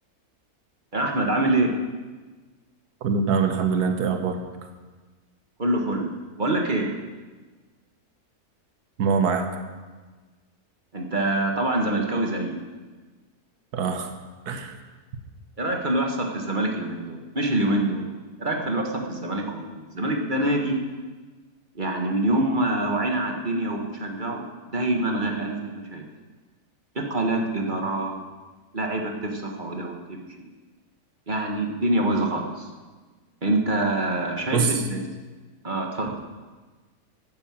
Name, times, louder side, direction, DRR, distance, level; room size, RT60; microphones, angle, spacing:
voice 1, 0.9-1.7 5.6-6.1 6.4-6.9 10.9-12.6 15.6-18.1 18.4-20.8 21.7-24.4 24.7-26.0 26.9-28.2 28.7-30.5 31.3-32.7 33.4-35.0 35.6-36.1, right 1 dB, 35° right, 1 dB, 1.6 m, -25 dB
voice 2, 3.0-4.4 9.0-9.5 13.7-14.1 14.5-14.8 34.5-34.8, right 5 dB, 85° right, 6 dB, 1.6 m, -23 dB
11.5 x 9.9 x 7.5 m, 1.3 s
omnidirectional pair, 1.6 m